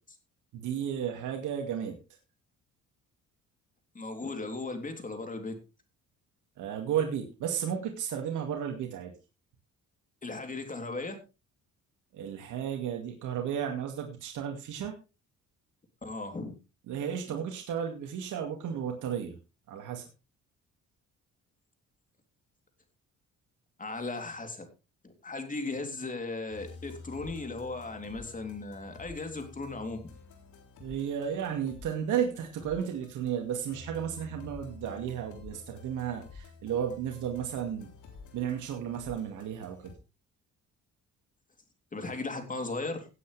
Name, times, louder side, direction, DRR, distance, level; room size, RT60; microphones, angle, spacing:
voice 1, 0.5-2.0 6.6-9.1 12.1-14.9 16.9-19.4 19.7-20.1 30.8-37.9 38.3-39.9, right 8 dB, 80° right, 2 dB, 2.3 m, -33 dB
voice 2, 4.0-5.6 10.2-11.2 16.0-16.5 23.8-24.6 25.0-30.0 41.9-43.1, left 3 dB, 25° left, 6 dB, 3.4 m, -37 dB
sound 1, 26.5-40.0, left 4 dB, 80° left, 3.6 m, -50 dB
17.5 x 8.6 x 3.4 m, 0.29 s
cardioid pair, 90°, 30 cm